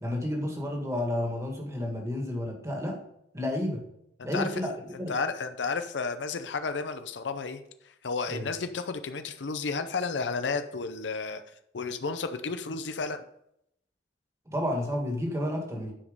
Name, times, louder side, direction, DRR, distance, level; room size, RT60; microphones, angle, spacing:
voice 1, 0.0-3.0 3.3-3.8 4.2-4.7 5.0-5.1 8.3-8.5 14.5-15.9, left 1 dB, 15° right, 1 dB, 1.9 m, -31 dB
voice 2, 5.1-7.6 8.0-11.4 11.7-13.2, left 4 dB, 90° left, 9 dB, 0.6 m, -32 dB
10.0 x 5.2 x 5.2 m, 0.77 s
head